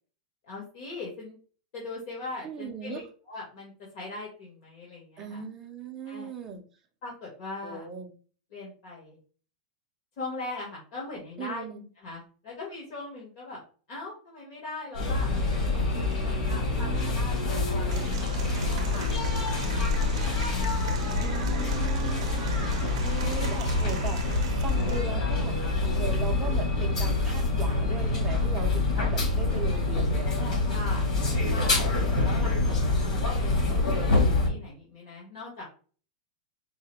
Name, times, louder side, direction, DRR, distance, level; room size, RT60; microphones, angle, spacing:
voice 1, 0.4-1.4 1.7-3.0 3.3-5.4 6.1-6.3 7.0-7.9 8.5-9.2 10.2-11.6 12.0-13.6 13.9-15.8 16.2-20.3 20.6-21.5 22.3-22.6 30.7-31.1 31.5-35.7, left 3 dB, 45° left, -4 dB, 1.4 m, -41 dB
voice 2, 2.4-3.0 5.2-6.6 7.6-8.1 11.4-11.8 16.7-17.2 21.1-22.3 23.0-25.6 25.8-30.5, right 6 dB, 15° right, 3 dB, 0.6 m, -38 dB
sound 1, 14.9-34.5, left 2 dB, 80° left, 2.3 m, -26 dB
Applause / Crowd, 17.9-25.0, right 9 dB, 60° right, 0.6 m, -42 dB
4.7 x 2.1 x 4.4 m, 0.39 s
supercardioid pair, 170°, 4 cm